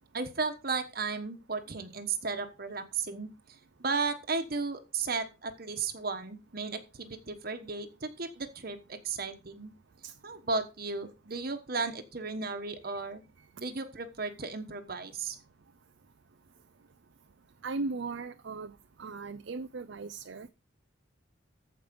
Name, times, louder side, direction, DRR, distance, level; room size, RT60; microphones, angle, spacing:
voice 1, 0.1-9.7 10.2-13.2 13.6-15.4, right 4 dB, 50° right, 1.3 m, -35 dB
voice 2, 17.6-18.7 19.0-20.5, right 3 dB, 65° right, 0.5 m, -37 dB
14.5 x 5.3 x 5.2 m
head